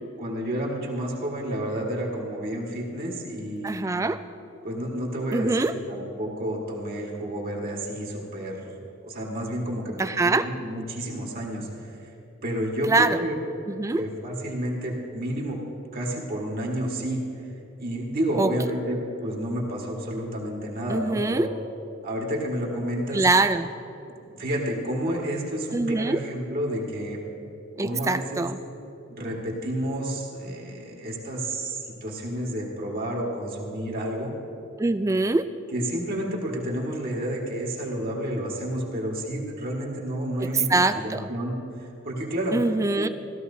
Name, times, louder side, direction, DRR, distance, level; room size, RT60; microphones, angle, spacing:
voice 1, 0.0-3.9 4.6-5.6 5.9-8.7 9.0-11.7 12.4-13.4 14.0-15.6 15.9-17.2 17.8-21.5 22.0-23.3 24.1-27.2 27.8-28.4 29.1-34.3 35.7-41.5 41.8-42.6 42.9-43.1, right 1 dB, 45° right, -2 dB, 1.8 m, -30 dB
voice 2, 3.6-4.2 5.3-5.7 10.0-10.5 12.8-13.2 13.7-14.0 18.4-18.5 20.9-21.5 23.1-23.7 25.7-26.2 27.8-28.6 34.8-35.5 40.7-41.3 42.5-43.1, right 3 dB, 15° right, 11 dB, 0.3 m, -23 dB
16.0 x 13.5 x 2.8 m, 2.7 s
head